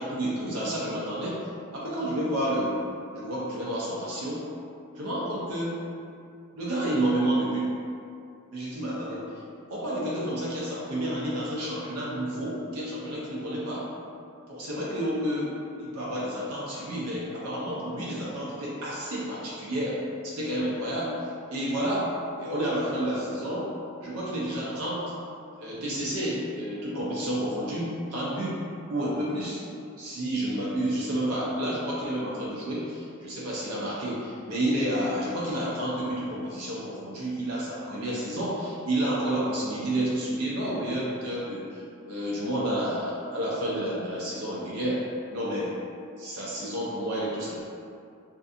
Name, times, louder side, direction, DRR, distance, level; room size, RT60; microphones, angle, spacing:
voice 1, 0.0-1.4 1.7-2.8 3.1-4.4 4.9-5.9 6.5-7.7 8.5-9.4 9.7-13.9 14.5-20.0 20.2-21.2 21.5-23.7 24.0-25.1 25.6-28.6 28.9-29.6 30.0-45.0 45.3-45.8 46.2-47.7, right 1 dB, 75° right, -6 dB, 0.5 m, -30 dB
2.5 x 2.4 x 2.4 m, 2.5 s
head